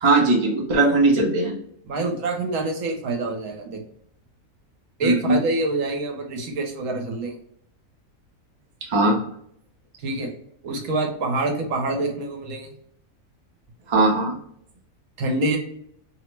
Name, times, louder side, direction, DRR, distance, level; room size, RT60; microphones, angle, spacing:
voice 1, 0.0-1.6 5.0-5.4 8.9-9.2 13.9-14.3, right 2 dB, 40° right, -1 dB, 0.4 m, -19 dB
voice 2, 1.9-3.8 5.0-7.3 10.0-10.3 10.6-12.7 15.2-15.6, right 2 dB, 70° right, 2 dB, 1.0 m, -26 dB
2.9 x 2.0 x 3.1 m, 0.68 s
omnidirectional pair, 1.5 m